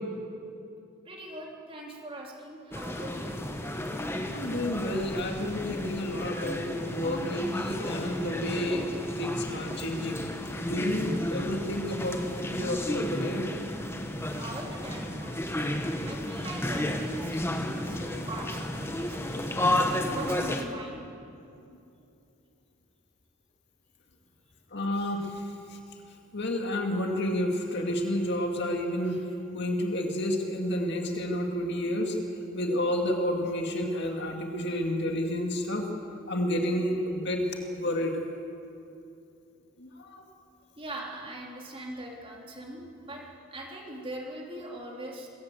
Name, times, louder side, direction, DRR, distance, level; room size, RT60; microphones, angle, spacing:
voice 1, 1.0-3.4 14.4-19.5 20.1-21.0 40.8-45.3, right 1 dB, 25° right, -1 dB, 3.2 m, -41 dB
sound 1, 2.7-20.6, left 1 dB, 10° left, 1.1 m, -32 dB
voice 2, 4.3-10.2 10.7-13.5 24.7-25.3 26.3-29.2 29.5-32.2 32.5-35.8 36.3-37.4 37.7-38.1 39.8-40.2, left 1 dB, 50° left, 2 dB, 2.1 m, -30 dB
24.5 x 15.0 x 8.0 m, 2.6 s
head